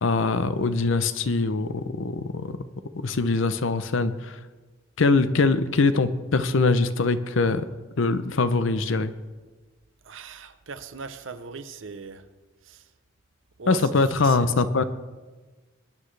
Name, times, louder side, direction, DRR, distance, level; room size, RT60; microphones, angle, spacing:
voice 1, 0.0-2.6 2.9-4.4 5.0-7.6 8.0-9.1 13.7-14.8, left 3 dB, 65° left, 12 dB, 0.6 m, -23 dB
voice 2, 10.0-12.2 12.6-12.9 13.6-14.6, right 4 dB, 60° right, 11 dB, 0.7 m, -40 dB
21.5 x 9.7 x 3.3 m, 1.3 s
head